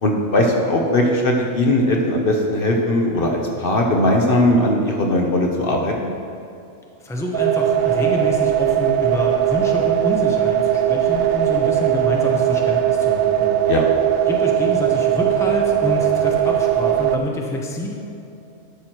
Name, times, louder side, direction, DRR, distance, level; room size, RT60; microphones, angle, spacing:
voice 1, 0.0-6.1 13.7-13.9, left 1 dB, 50° left, 1 dB, 1.0 m, -19 dB
voice 2, 7.0-13.6 14.3-17.9, left 1 dB, 5° left, -1 dB, 0.9 m, -27 dB
sound 1, 7.3-17.2, right 10 dB, 65° right, 0.7 m, -19 dB
12.0 x 6.2 x 4.5 m, 2.7 s
omnidirectional pair, 1.3 m